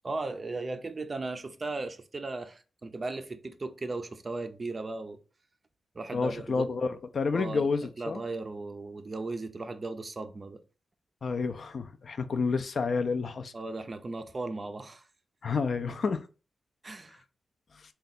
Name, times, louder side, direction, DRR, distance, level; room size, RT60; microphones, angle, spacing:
voice 1, 0.0-5.2 5.9-6.7 7.3-7.7 8.0-10.6 13.5-15.0 16.8-17.2, right 3 dB, 30° right, 0.4 m, -37 dB
voice 2, 6.1-8.2 11.2-13.5 15.4-16.2, left 4 dB, 50° left, 0.3 m, -29 dB
3.7 x 2.2 x 4.1 m
wide cardioid pair, 145°, 0 cm